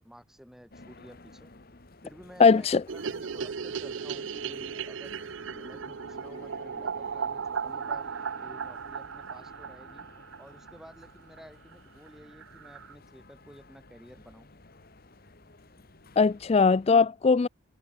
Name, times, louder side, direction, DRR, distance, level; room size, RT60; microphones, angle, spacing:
voice 1, 0.0-1.5 2.0-5.1 5.5-8.1 8.4-10.1 10.4-14.5 15.8-15.9, equal, ahead, 5.0 m, -52 dB
sound 1, 0.7-16.9, left 2 dB, 45° left, 1.6 m, -53 dB
voice 2, 2.4-2.8 16.2-17.5, left 4 dB, 30° left, 0.3 m, -20 dB
sound 2, 2.9-11.1 11.4-11.5 11.7-11.8 12.1-12.2 12.4-12.9, right 6 dB, 60° right, 0.5 m, -36 dB
head